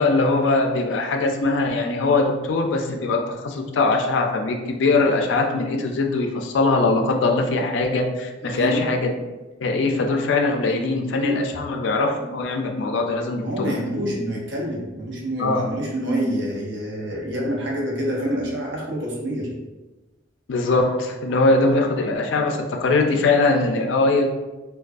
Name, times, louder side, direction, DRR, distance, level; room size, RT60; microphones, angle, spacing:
voice 1, 0.0-9.1 9.6-13.7 15.4-15.6 20.5-24.3, left 3 dB, 65° left, 3 dB, 0.3 m, -21 dB
voice 2, 8.4-8.8 13.4-19.5, equal, 65° right, -3 dB, 0.6 m, -27 dB
2.4 x 2.2 x 2.3 m, 1.1 s
head